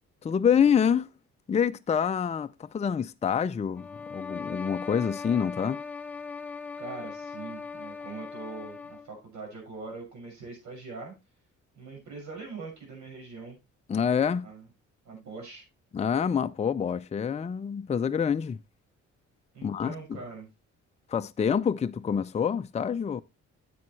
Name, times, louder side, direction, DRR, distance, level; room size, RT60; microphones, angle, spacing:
voice 1, 0.2-1.1 1.5-5.8 13.9-14.5 15.9-18.6 19.6-20.2 21.1-23.2, left 7 dB, 25° left, 0.4 m, -27 dB
sound 1, 3.7-9.1, left 5 dB, 5° left, 0.9 m, -39 dB
voice 2, 6.8-11.1 11.8-13.6 14.4-14.6 15.0-15.6 19.5-20.5, right 4 dB, 70° right, 6.3 m, -42 dB
9.5 x 8.6 x 3.1 m
cardioid pair, 90°, 30 cm